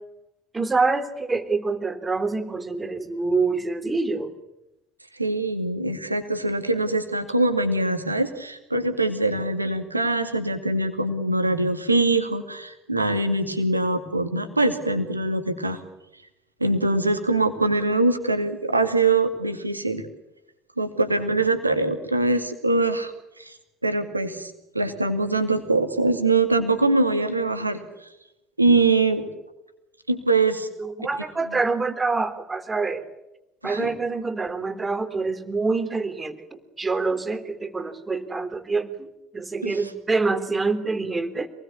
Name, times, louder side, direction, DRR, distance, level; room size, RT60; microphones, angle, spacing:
voice 1, 0.5-4.3 30.8-33.0 33.6-41.5, right 3 dB, 20° right, 9 dB, 3.4 m, -26 dB
voice 2, 5.1-15.8 16.6-20.0 20.8-23.6 23.8-28.1 28.6-29.3 30.1-30.7 33.6-33.9 39.6-39.9, right 2 dB, 85° right, 8 dB, 2.4 m, -23 dB
27.0 x 20.5 x 8.6 m, 0.92 s
figure-of-eight pair, 60°, 0 cm